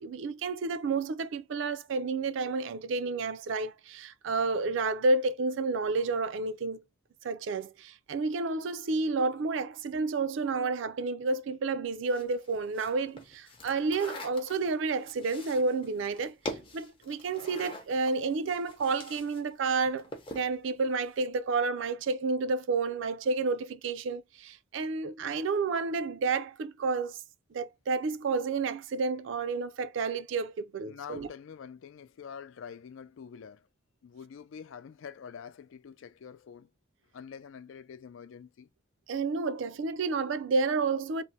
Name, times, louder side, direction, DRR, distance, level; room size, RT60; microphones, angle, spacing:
voice 1, 0.0-6.8 7.2-16.4 16.7-27.2 27.5-31.3 39.1-41.2, right 4 dB, 70° right, 0.4 m, -30 dB
sound 1, 12.1-19.4 19.7-20.5, left 1 dB, 25° left, 0.6 m, -44 dB
voice 2, 30.8-33.7 34.0-36.7 37.1-38.7, left 7 dB, 75° left, 0.4 m, -46 dB
3.2 x 2.0 x 2.7 m
head